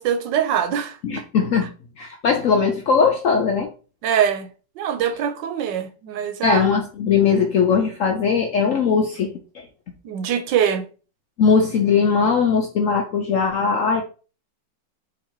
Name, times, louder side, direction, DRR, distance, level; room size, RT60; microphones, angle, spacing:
voice 1, 0.0-1.0 4.0-4.5 4.8-6.6 10.0-10.8, right 8 dB, 80° right, 1.3 m, -23 dB
voice 2, 1.0-1.7 2.0-3.7 6.4-9.3 11.4-14.0, left 5 dB, 70° left, 0.7 m, -19 dB
4.0 x 2.9 x 4.5 m
omnidirectional pair, 2.0 m